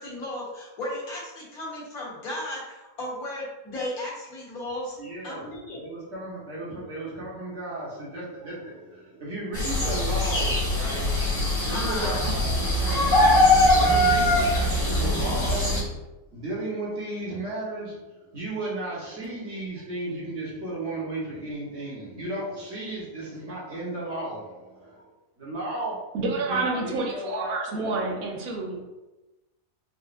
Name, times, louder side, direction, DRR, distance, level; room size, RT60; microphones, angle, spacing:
voice 1, 0.0-5.0 5.2-5.8 11.7-12.3, left 1 dB, 85° left, -5 dB, 1.6 m, -35 dB
voice 2, 5.0-11.1 11.5-15.9 16.3-25.1 25.4-26.0 26.5-27.6, right 1 dB, 50° right, -6 dB, 1.3 m, -35 dB
sound 1, 9.5-15.8, left 1 dB, 65° left, 1.4 m, -22 dB
voice 3, 26.1-28.8, right 3 dB, 85° right, 0 dB, 1.1 m, -28 dB
4.0 x 2.4 x 2.5 m, 1.0 s
omnidirectional pair, 1.5 m